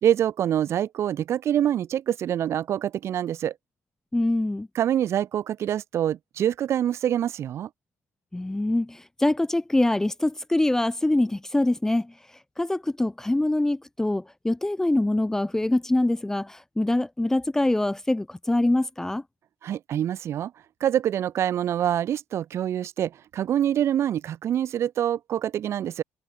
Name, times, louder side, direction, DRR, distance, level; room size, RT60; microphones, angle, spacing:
voice 1, 0.0-3.5 4.7-7.7 19.6-20.5 20.8-26.0, right 10 dB, 50° right, 0.7 m, -25 dB
voice 2, 4.1-4.7 8.3-12.1 12.6-19.2, left 1 dB, 10° left, 0.5 m, -24 dB
cardioid pair, 105°, 6 cm